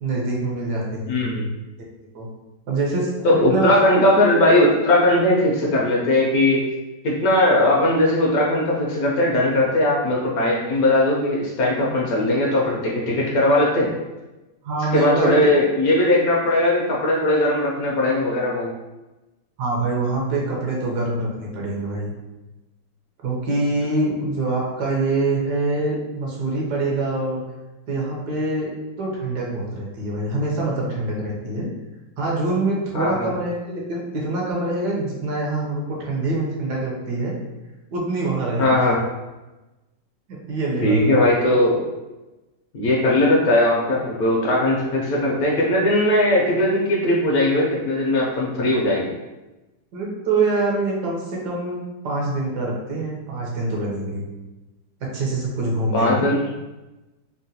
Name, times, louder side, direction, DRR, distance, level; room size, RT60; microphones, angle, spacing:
voice 1, 0.0-1.2 2.1-2.3 2.7-3.7 14.6-15.3 19.6-22.1 23.2-27.4 27.9-31.7 32.2-37.4 37.9-38.8 40.3-41.3 49.9-54.2 55.0-56.2, right 2 dB, 75° right, -3 dB, 1.3 m, -25 dB
voice 2, 1.1-1.4 3.2-6.6 7.0-13.9 14.9-18.7 32.9-33.3 38.6-39.0 40.8-41.8 42.7-49.1 55.9-56.4, left 1 dB, 70° left, -3 dB, 1.0 m, -19 dB
3.8 x 2.1 x 2.7 m, 1.1 s
omnidirectional pair, 1.9 m